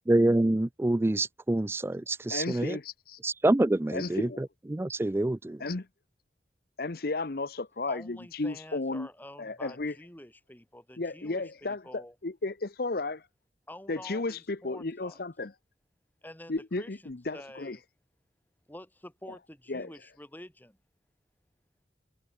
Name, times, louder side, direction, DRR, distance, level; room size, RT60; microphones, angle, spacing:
voice 1, 0.1-2.8 3.2-5.6, right 1 dB, 15° right, 0.3 m, -26 dB
voice 2, 2.3-3.2 3.9-4.4 5.6-5.9 6.8-9.1 9.4-9.9 11.0-13.2 13.9-15.5 16.5-17.8 19.7-19.9, left 3 dB, 55° left, 0.9 m, -34 dB
voice 3, 7.9-12.2 13.7-15.2 16.2-17.0 17.3-17.8 18.7-20.8, left 1 dB, 10° left, 3.7 m, -48 dB
head